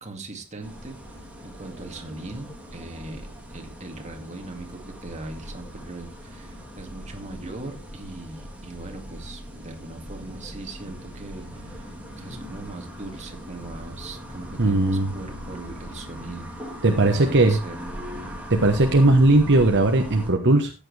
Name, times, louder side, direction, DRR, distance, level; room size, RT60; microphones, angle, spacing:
voice 1, 0.0-17.8, right 2 dB, 35° right, 3 dB, 2.4 m, -40 dB
sound 1, 0.6-20.3, equal, 5° right, 3.1 m, -39 dB
voice 2, 14.6-15.1 16.8-17.6 18.5-20.7, right 2 dB, 55° right, 4 dB, 1.2 m, -18 dB
14.0 x 8.8 x 3.4 m, 0.28 s
head